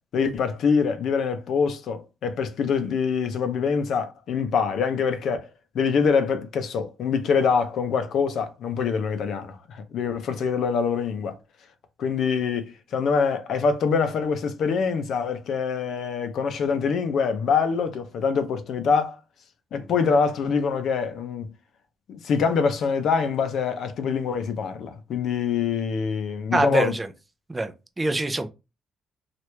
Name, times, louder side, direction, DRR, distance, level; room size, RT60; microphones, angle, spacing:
voice 1, 0.1-5.5 5.7-11.3 12.0-19.2 19.7-21.5 22.1-26.9, left 5 dB, 70° left, 0.5 m, -24 dB
voice 2, 26.5-27.1 27.5-28.5, right 2 dB, 20° right, 0.5 m, -25 dB
3.0 x 2.5 x 3.2 m
cardioid pair, 90°, 0 cm